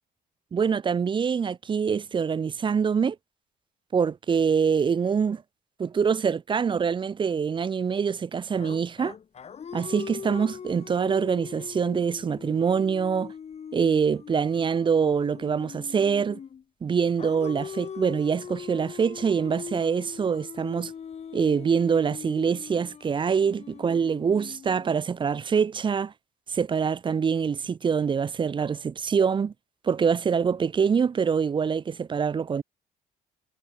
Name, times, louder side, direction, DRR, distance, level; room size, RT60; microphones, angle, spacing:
voice 1, 0.5-3.2 3.9-5.4 5.8-9.1 9.7-13.3 13.7-16.4 16.8-20.9 21.3-26.1 26.5-29.5 29.8-32.6, right 6 dB, 30° right, 0.7 m, -25 dB
sound 1, 8.6-16.6 17.2-25.3, left 7 dB, 40° left, 2.5 m, -41 dB
cardioid pair, 110°, 17 cm